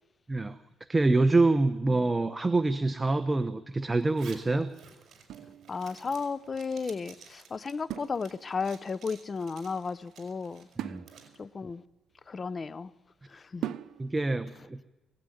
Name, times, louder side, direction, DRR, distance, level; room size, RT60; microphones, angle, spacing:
voice 1, 0.9-4.7 10.8-11.0 14.0-14.8, right 2 dB, 20° right, 1.0 m, -26 dB
Zipper (clothing), 4.0-11.4, right 6 dB, 60° right, 5.6 m, -54 dB
sound 1, 5.2-6.3 7.9-8.8 10.8-12.8 13.6-14.4, right 11 dB, 75° right, 0.9 m, -41 dB
voice 2, 5.7-10.7 11.4-11.8 12.3-12.9 13.2-13.7, left 5 dB, 35° left, 0.9 m, -34 dB
24.0 x 17.0 x 9.4 m
cardioid pair, 90°, 0 cm